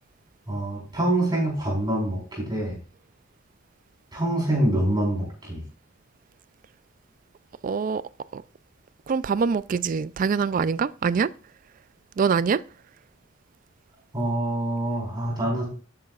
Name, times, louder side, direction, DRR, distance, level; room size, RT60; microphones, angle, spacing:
voice 1, 0.5-2.8 4.1-5.6 14.1-15.6, right 1 dB, 20° right, 4.1 m, -25 dB
voice 2, 7.6-8.0 8.3-8.4 9.1-11.3 12.2-12.6, right 5 dB, 40° right, 0.3 m, -24 dB
12.0 x 8.6 x 2.4 m
head